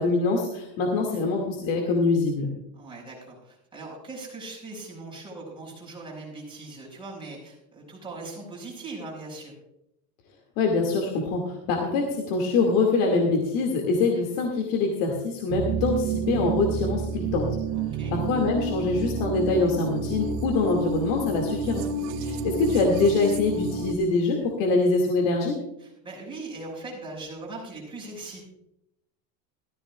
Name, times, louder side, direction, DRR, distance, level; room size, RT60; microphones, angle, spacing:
voice 1, 0.0-2.5 10.6-17.5 18.1-21.9 22.2-25.5, left 3 dB, 60° left, 0 dB, 2.4 m, -24 dB
voice 2, 2.7-9.5 17.7-18.1 22.1-22.3 25.8-28.5, right 2 dB, 10° right, -4 dB, 5.9 m, -40 dB
sound 1, 15.5-24.0, right 4 dB, 80° right, 1.2 m, -29 dB
16.5 x 15.0 x 2.4 m, 0.83 s
supercardioid pair, 155°, 48 cm